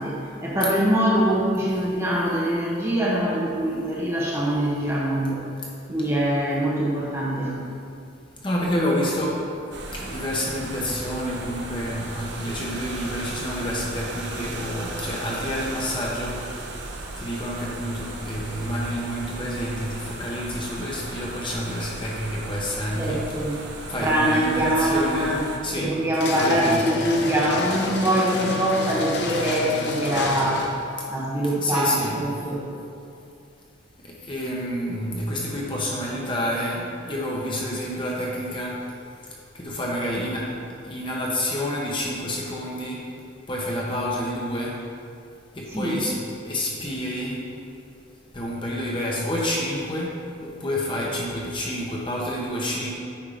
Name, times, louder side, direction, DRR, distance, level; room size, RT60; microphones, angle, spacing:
voice 1, 0.0-5.4 5.9-7.6 22.9-23.6 24.0-25.4 25.8-30.7 31.1-32.6 45.7-46.0, right 1 dB, 15° right, -5 dB, 0.9 m, -23 dB
voice 2, 8.4-9.4 9.9-16.4 17.2-23.2 23.9-25.3 25.6-25.9 26.3-26.8 31.6-32.3 34.0-38.7 39.5-40.5 40.9-43.0 43.5-44.7 45.6-46.1 46.4-47.4 48.3-50.1 50.4-52.9, equal, 25° left, -4 dB, 0.9 m, -28 dB
sound 1, 9.7-25.6, right 2 dB, 60° right, 0.7 m, -36 dB
sound 2, 26.1-30.9, left 2 dB, 55° left, 0.7 m, -29 dB
8.6 x 3.7 x 4.9 m, 2.4 s
head